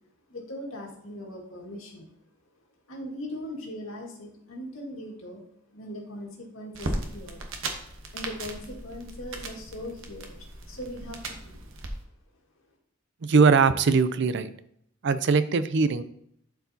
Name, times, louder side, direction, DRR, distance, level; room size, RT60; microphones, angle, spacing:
voice 1, 0.3-2.1 2.9-5.4 5.7-7.5 7.8-11.6, left 1 dB, 85° left, 0 dB, 1.9 m, -40 dB
sound 1, 6.7-11.9, right 2 dB, 80° right, 1.1 m, -37 dB
voice 2, 13.2-14.5 15.0-16.0, right 4 dB, 60° right, 13 dB, 0.5 m, -21 dB
11.5 x 4.7 x 2.8 m, 0.71 s
head